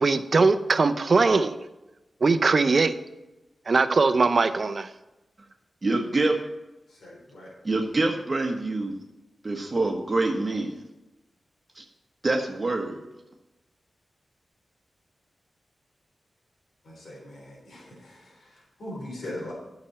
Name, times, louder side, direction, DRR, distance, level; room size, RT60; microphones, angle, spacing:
voice 1, 0.0-1.5 2.2-3.0 3.7-4.9, right 4 dB, 50° right, 11 dB, 0.6 m, -21 dB
voice 2, 5.8-6.4 7.6-8.9 9.4-10.8 11.8-11.9 12.2-13.0, right 2 dB, 35° right, 1 dB, 1.3 m, -26 dB
voice 3, 7.0-7.5 16.9-18.2 18.8-19.5, left 1 dB, 75° left, -4 dB, 3.7 m, -39 dB
9.7 x 6.1 x 5.6 m, 1.0 s
wide cardioid pair, 85°, 0 cm